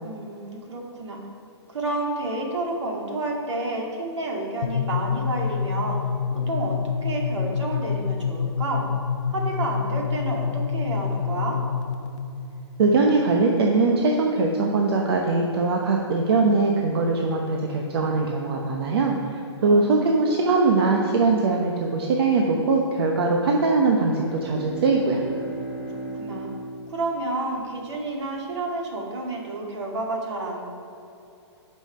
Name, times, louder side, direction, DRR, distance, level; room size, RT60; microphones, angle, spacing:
voice 1, 0.0-1.2 1.7-6.0 6.3-6.8 7.0-8.8 9.3-11.6 19.6-20.2 26.1-26.5 26.9-30.6, right 2 dB, 75° right, 0 dB, 2.3 m, -30 dB
sound 1, 4.6-12.2, left 6 dB, 80° left, 0.7 m, -27 dB
voice 2, 12.8-19.1 19.6-25.2, right 3 dB, 55° right, 0 dB, 1.1 m, -21 dB
Bowed string instrument, 23.6-28.2, right 2 dB, 5° left, 0.8 m, -37 dB
10.5 x 5.7 x 5.6 m, 2.6 s
hypercardioid pair, 150°, 15 cm